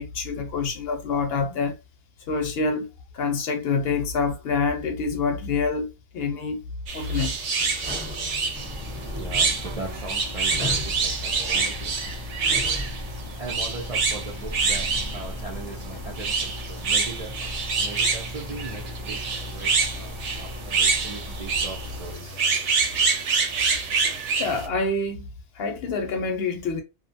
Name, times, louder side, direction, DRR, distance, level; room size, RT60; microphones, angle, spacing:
voice 1, 0.0-1.8 2.3-2.9 3.1-6.6 6.9-7.4 24.0-26.8, left 4 dB, 65° left, 0.7 m, -27 dB
sound 1, 6.9-24.7, right 5 dB, 85° right, 1.0 m, -26 dB
Sliding door / Squeak, 7.0-13.1, left 2 dB, 10° right, 0.7 m, -37 dB
sound 2, 8.5-22.1, left 2 dB, 40° left, 0.3 m, -37 dB
voice 2, 9.1-12.6 12.8-12.9 13.4-22.4, right 3 dB, 50° right, 0.4 m, -39 dB
2.6 x 2.1 x 2.6 m
omnidirectional pair, 1.2 m